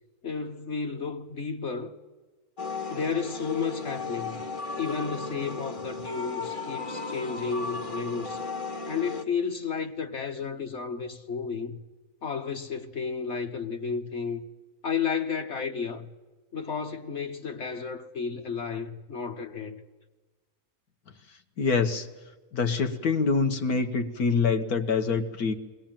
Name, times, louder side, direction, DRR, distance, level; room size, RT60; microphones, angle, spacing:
voice 1, 0.2-2.0 2.9-4.4 4.8-8.4 8.9-11.8 12.2-14.4 14.8-16.1 16.5-19.8, left 6 dB, 50° left, 1.3 m, -32 dB
sound 1, 2.6-9.2, left 4 dB, 30° left, 0.8 m, -35 dB
voice 2, 21.6-22.1 22.5-25.5, left 4 dB, 80° left, 1.7 m, -25 dB
21.5 x 17.5 x 9.0 m
omnidirectional pair, 1.6 m